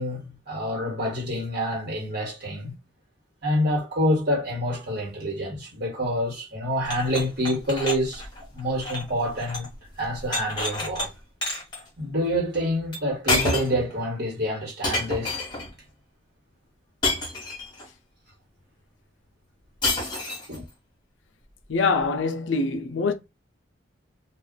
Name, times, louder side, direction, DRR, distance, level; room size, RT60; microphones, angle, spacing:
voice 1, 0.0-2.7 3.4-8.2 8.5-9.7 10.0-11.1 12.0-15.4 20.5-20.6, equal, 50° right, 1.5 m, -27 dB
sound 1, 6.8-9.7 10.0-11.1 11.4-11.8 12.9-13.0 13.3-13.9 14.8-15.7 17.0-17.8 19.8-20.6, left 2 dB, 20° left, 1.2 m, -28 dB
voice 2, 21.7-23.1, left 4 dB, 70° left, 0.5 m, -24 dB
2.4 x 2.4 x 3.7 m
head